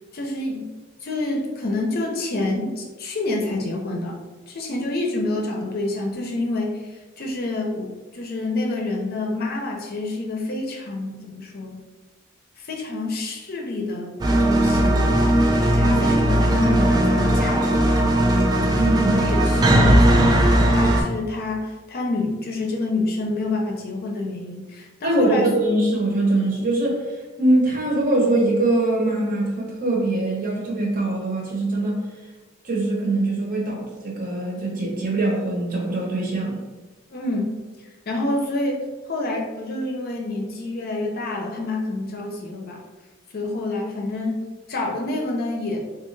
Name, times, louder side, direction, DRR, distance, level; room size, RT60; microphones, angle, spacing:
voice 1, 0.1-0.6 1.0-4.2 4.5-11.8 12.6-14.1 14.4-15.0 15.5-18.3 19.1-20.4 20.7-25.5 37.1-37.6 38.1-42.8 43.3-44.4 44.7-45.9, left 2 dB, 45° left, 0 dB, 0.5 m, -28 dB
sound 1, 14.2-21.0, right 1 dB, 20° right, 0.3 m, -18 dB
voice 2, 18.7-19.4 25.0-32.0 32.6-36.6, right 2 dB, 40° right, -2 dB, 0.8 m, -22 dB
3.3 x 2.4 x 3.2 m, 1.2 s
head